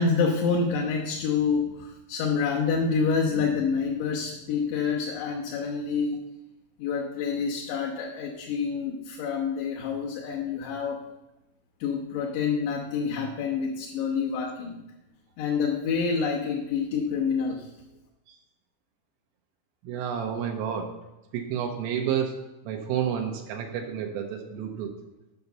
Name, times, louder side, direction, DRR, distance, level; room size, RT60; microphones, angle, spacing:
voice 1, 0.0-6.3 6.8-11.0 11.8-14.8 15.4-17.7, left 5 dB, 70° left, -4 dB, 2.8 m, -27 dB
voice 2, 19.8-20.9 21.3-22.4 22.7-24.9, right 8 dB, 85° right, 2 dB, 3.5 m, -30 dB
9.3 x 5.7 x 6.8 m, 0.95 s
omnidirectional pair, 5.8 m